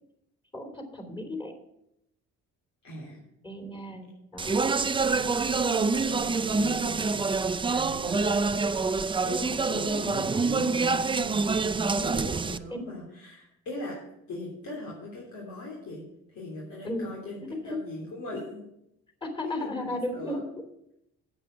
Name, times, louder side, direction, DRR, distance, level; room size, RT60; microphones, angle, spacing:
voice 1, 0.5-1.5 3.4-4.6 5.0-5.4 12.7-12.8 16.8-17.1 17.5-17.8 19.2-20.4, left 1 dB, 15° left, 4 dB, 3.1 m, -35 dB
voice 2, 2.8-3.2 5.5-7.1 7.7-8.8 9.2-11.6 11.8-14.0 14.3-18.6 19.4-20.4, left 2 dB, 70° left, -4 dB, 3.1 m, -40 dB
Speech, 4.4-12.6, right 4 dB, 15° right, 0.4 m, -26 dB
9.0 x 7.7 x 6.2 m, 0.81 s
cardioid pair, 90°, 30 cm